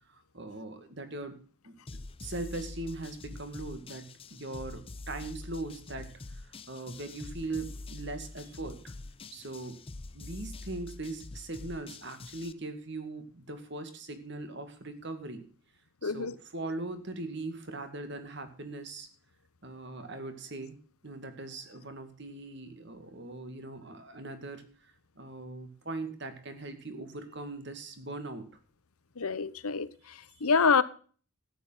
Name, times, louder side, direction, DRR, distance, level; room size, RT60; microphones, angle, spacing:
voice 1, 0.3-1.4 1.6-1.8 2.2-6.1 6.4-8.9 9.3-9.8 10.1-15.5 16.0-19.1 19.6-20.8 21.0-24.6 25.2-28.5, right 2 dB, 55° right, 2.1 m, -40 dB
sound 1, 1.9-12.5, left 2 dB, 25° left, 0.5 m, -45 dB
voice 2, 16.0-16.3 29.2-30.8, left 5 dB, 90° left, 0.9 m, -27 dB
13.5 x 9.3 x 5.7 m
head